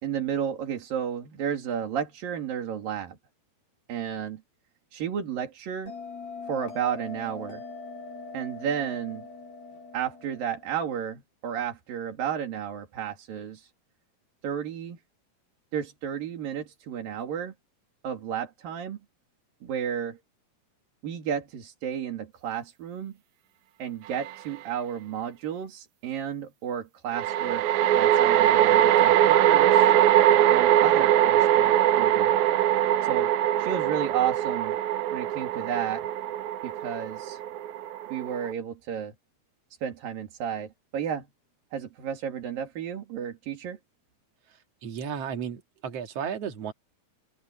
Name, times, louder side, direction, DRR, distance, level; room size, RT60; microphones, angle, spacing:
voice 1, 0.0-3.2 3.9-4.4 4.9-5.9 6.5-7.6 8.3-9.3 9.9-13.7 14.4-15.0 15.7-17.5 18.0-19.0 19.6-20.2 21.0-23.2 23.8-27.7 28.0-29.9 30.5-32.4 33.0-33.3 33.6-34.8 35.1-36.1 36.6-37.4 38.1-39.1 39.8-41.3 41.7-43.8, right 8 dB, 70° right, 4.3 m, -32 dB
Bell, 5.9-10.9, left 4 dB, 70° left, 5.5 m, -42 dB
sound 1, 24.2-24.3 27.1-38.5, right 12 dB, 90° right, 1.7 m, -22 dB
voice 2, 44.8-46.7, right 7 dB, 50° right, 2.6 m, -33 dB
open air
omnidirectional pair, 4.3 m